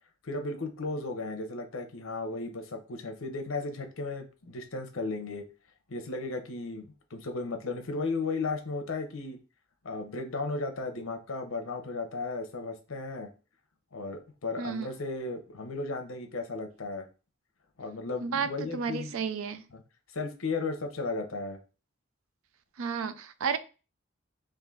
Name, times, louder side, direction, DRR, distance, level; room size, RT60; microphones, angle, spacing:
voice 1, 0.2-5.4 5.9-9.4 9.8-13.3 13.9-17.0 17.8-19.1 19.7-19.8 20.1-21.6, left 3 dB, 80° left, 0.8 m, -35 dB
voice 2, 14.6-14.9 18.2-19.6 22.8-23.6, right 6 dB, 80° right, 0.5 m, -32 dB
3.7 x 2.6 x 3.7 m
head